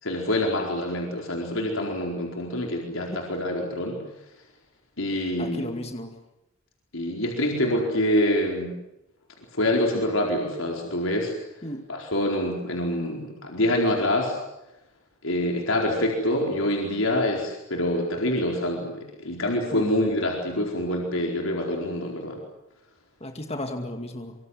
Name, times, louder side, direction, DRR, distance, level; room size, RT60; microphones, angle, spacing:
voice 1, 0.0-4.0 5.0-5.7 6.9-8.7 9.5-11.3 11.9-14.4 15.2-22.4, left 1 dB, 80° left, 0 dB, 4.6 m, -26 dB
voice 2, 5.4-6.1 11.6-11.9 19.7-19.9 23.2-24.4, left 1 dB, 30° left, 5 dB, 2.3 m, -34 dB
25.5 x 25.0 x 8.0 m, 0.92 s
head